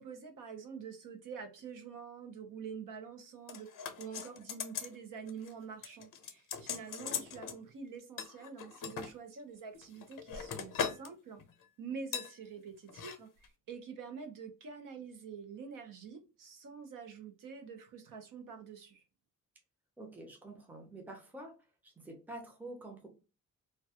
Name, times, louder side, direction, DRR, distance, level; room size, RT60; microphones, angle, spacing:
voice 1, 0.0-3.7 4.0-11.4 11.8-19.0, right 6 dB, 75° right, 0.7 m, -46 dB
sound 1, 3.5-5.0 5.3-5.5 5.8-7.6 8.2-9.1 9.7-11.1 11.4-11.6 12.1-12.3 12.9-13.2 13.4-13.5, left 7 dB, 80° left, 0.6 m, -40 dB
voice 2, 20.0-21.6 21.8-23.1, right 1 dB, 5° right, 0.5 m, -47 dB
2.3 x 2.2 x 2.7 m
wide cardioid pair, 170°, 32 cm